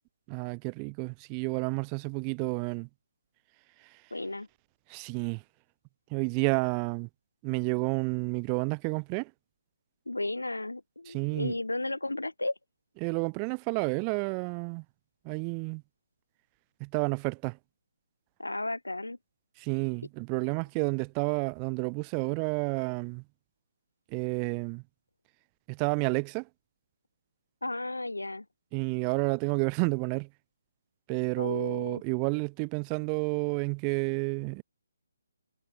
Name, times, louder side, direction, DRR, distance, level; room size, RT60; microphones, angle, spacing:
voice 1, 0.3-2.9 4.9-5.4 6.1-7.1 7.4-9.3 11.1-11.5 13.0-14.8 15.3-15.8 16.8-17.6 19.6-23.2 24.1-24.8 25.7-26.5 28.7-30.3 31.1-34.6, right 40 dB or more, 25° right, 1.7 m, -30 dB
voice 2, 4.1-4.5 10.1-12.5 18.4-19.2 27.6-28.5 31.4-32.0, left 2 dB, 90° left, 2.7 m, -34 dB
figure-of-eight pair, 145°, 0 cm